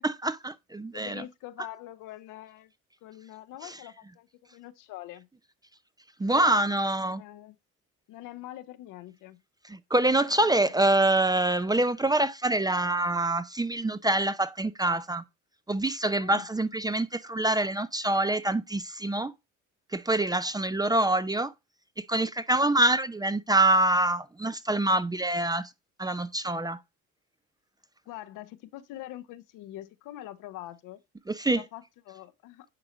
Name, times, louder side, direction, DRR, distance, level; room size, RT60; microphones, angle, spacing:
voice 1, 0.0-1.2 3.6-3.7 6.2-7.2 9.7-15.2 15.7-19.3 19.9-21.5 22.0-25.7 26.0-26.8 31.3-31.6, right 2 dB, 10° right, 0.6 m, -25 dB
voice 2, 0.9-2.7 3.0-5.3 6.2-6.6 7.0-7.6 8.1-9.4 10.5-10.7 16.2-16.5 28.1-31.0 31.5-32.7, left 14 dB, 65° left, 0.9 m, -44 dB
9.8 x 4.8 x 3.9 m
hypercardioid pair, 65°, 34 cm